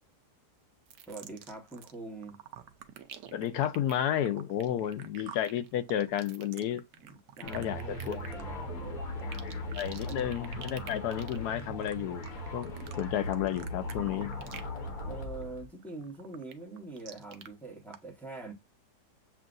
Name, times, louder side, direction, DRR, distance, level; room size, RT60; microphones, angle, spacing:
sound 1, 0.9-1.9 2.2-14.8 15.1-15.4 15.8-17.5 17.9-18.0, right 9 dB, 70° right, 1.1 m, -48 dB
voice 1, 1.1-2.4 7.0-9.5 10.0-10.2 15.0-18.5, right 3 dB, ahead, 0.9 m, -44 dB
voice 2, 3.3-6.8 7.4-8.2 9.7-12.3 12.5-12.7 13.0-14.3, left 11 dB, 80° left, 1.1 m, -32 dB
sound 2, 7.4-15.7, left 1 dB, 60° left, 1.6 m, -39 dB
7.3 x 2.4 x 2.5 m
omnidirectional pair, 1.7 m